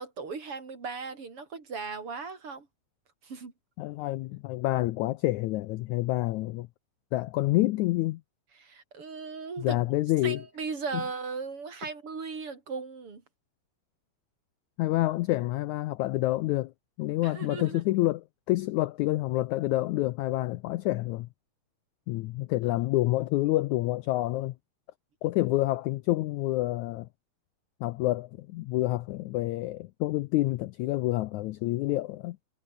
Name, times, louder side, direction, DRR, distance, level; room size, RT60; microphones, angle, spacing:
voice 1, 0.0-2.7 3.2-3.5 8.5-9.8 10.2-13.2 17.2-17.8, right 4 dB, 40° right, 4.7 m, -37 dB
voice 2, 3.8-6.7 7.1-8.2 9.6-10.4 14.8-16.7 17.0-21.3 22.1-24.5 25.2-27.1 27.8-32.4, left 17 dB, 90° left, 1.7 m, -28 dB
omnidirectional pair, 4.1 m